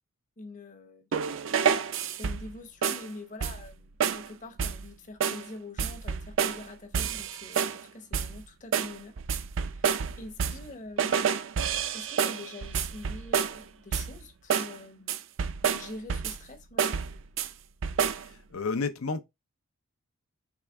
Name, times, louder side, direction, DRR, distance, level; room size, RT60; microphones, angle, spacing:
voice 1, 0.4-1.1 2.2-9.2 9.7-11.2 11.9-15.2 15.7-17.1, left 2 dB, 35° left, 0.8 m, -45 dB
sound 1, 1.1-2.5 2.8-3.1 3.4-3.7 4.0-4.3 4.6-4.9 5.2-5.5 5.8-6.7 6.9-7.8 8.1-8.4 8.7-10.7 11.0-13.6 13.9-14.2 14.5-14.8 15.1-16.5 16.8-17.5 17.8-18.3, right 7 dB, 60° right, 0.4 m, -29 dB
voice 2, 18.3-19.2, left 4 dB, 80° left, 0.6 m, -32 dB
4.7 x 3.2 x 3.4 m
head